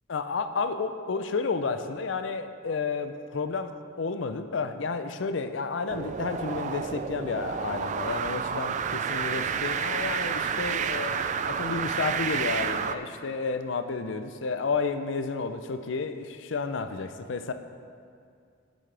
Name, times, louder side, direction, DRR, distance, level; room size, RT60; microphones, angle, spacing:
voice 1, 0.1-3.7 4.0-17.5, left 4 dB, 70° left, 9 dB, 0.5 m, -31 dB
sound 1, 5.9-13.0, right 7 dB, 40° right, 0.3 m, -30 dB
17.0 x 6.2 x 3.4 m, 2.3 s
head